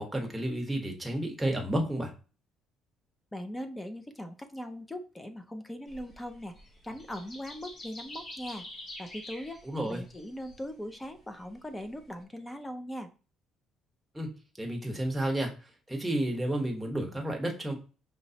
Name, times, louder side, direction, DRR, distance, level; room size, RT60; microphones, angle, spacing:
voice 1, 0.0-2.1 9.6-10.0 14.1-14.3 14.6-15.5 15.9-17.7, right 1 dB, 5° right, 1 dB, 1.1 m, -31 dB
voice 2, 3.3-6.5 6.8-8.6 9.0-13.1, equal, 10° left, 8 dB, 0.5 m, -40 dB
sound 1, 5.9-12.2, left 1 dB, 30° left, 0.9 m, -47 dB
5.3 x 3.0 x 2.8 m, 0.35 s
cardioid pair, 130°, 0 cm